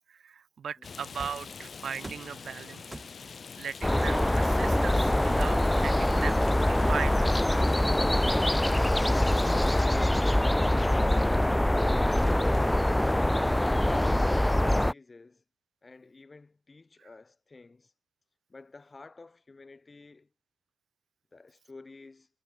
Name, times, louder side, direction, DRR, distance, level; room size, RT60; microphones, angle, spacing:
voice 1, 0.0-3.0 3.6-7.8, right 7 dB, 55° right, 0.6 m, -38 dB
Rain, 0.8-9.8, left 5 dB, 45° left, 3.2 m, -44 dB
sound 1, 1.2-1.5 2.0-2.4 2.9-3.4 4.5-5.6 6.2-7.2, right 2 dB, 15° right, 5.6 m, -47 dB
sound 2, 3.8-14.9, left 1 dB, 10° left, 0.4 m, -24 dB
voice 2, 14.3-15.4 15.8-17.9 18.5-20.3 21.3-22.3, left 3 dB, 25° left, 5.9 m, -51 dB
cardioid pair, 85°, 0 cm